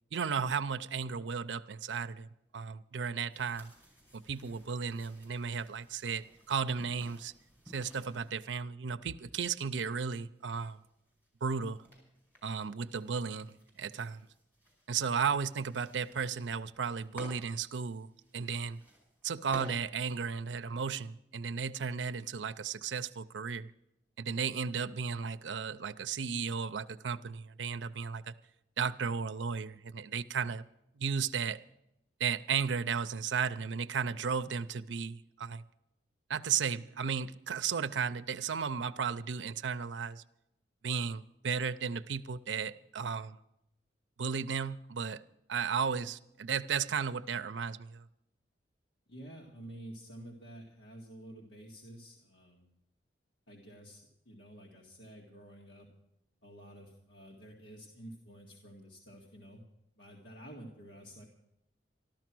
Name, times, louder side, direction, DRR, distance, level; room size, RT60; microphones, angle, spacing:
voice 1, 0.1-3.7 4.1-7.3 7.7-10.8 11.4-11.8 12.4-14.2 14.9-18.8 19.2-23.7 24.2-28.3 28.8-30.6 31.0-31.6 32.2-35.6 36.3-40.2 40.8-43.4 44.2-45.2 45.5-48.0, right 6 dB, 85° right, 0.5 m, -34 dB
sound 1, 3.3-8.3 9.3-21.1, equal, 10° left, 5.4 m, -56 dB
voice 2, 49.1-52.7 53.5-55.9 56.4-59.6 60.0-61.2, equal, 90° left, 2.0 m, -50 dB
13.5 x 12.5 x 6.1 m
head